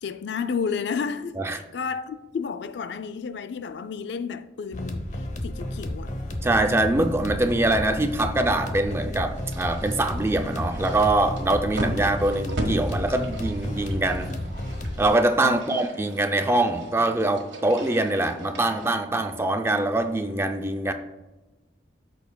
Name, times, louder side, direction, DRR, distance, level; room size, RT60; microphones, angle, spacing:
voice 1, 0.0-5.1 5.4-6.1 15.4-15.8, left 6 dB, 70° left, 0.4 m, -31 dB
sound 1, 4.7-15.1, left 1 dB, 40° left, 0.7 m, -32 dB
voice 2, 6.4-14.3 15.0-20.9, right 2 dB, 15° right, 0.4 m, -23 dB
sound 2, 9.3-18.9, right 1 dB, 90° right, 1.4 m, -37 dB
13.5 x 4.5 x 2.2 m
head